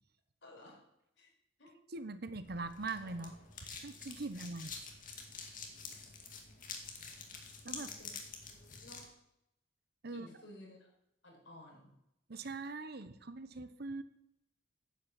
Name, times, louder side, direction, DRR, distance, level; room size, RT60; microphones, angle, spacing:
voice 1, 0.4-0.8 1.2-1.3 1.6-1.8 4.3-4.4 7.7-8.1 8.8-9.1 10.1-10.9 11.2-12.0, left 1 dB, 75° left, -2 dB, 5.3 m, -55 dB
voice 2, 1.9-3.4 3.8-4.7 7.6-7.9 10.0-10.3 12.3-14.0, right 3 dB, 55° right, 12 dB, 1.0 m, -42 dB
sound 1, 2.4-9.1, left 5 dB, 45° left, 2.2 m, -48 dB
10.5 x 8.8 x 8.2 m, 0.83 s
head